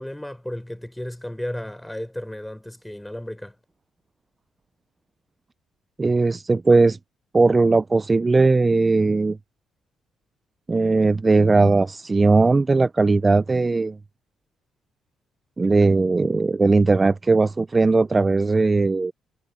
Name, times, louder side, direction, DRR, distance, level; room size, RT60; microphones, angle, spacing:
voice 1, 0.0-3.5, left 1 dB, 5° left, 5.5 m, -34 dB
voice 2, 6.0-7.0 7.3-9.4 10.7-14.0 15.6-19.1, right 3 dB, 30° right, 0.6 m, -18 dB
supercardioid pair, 55°, 0 cm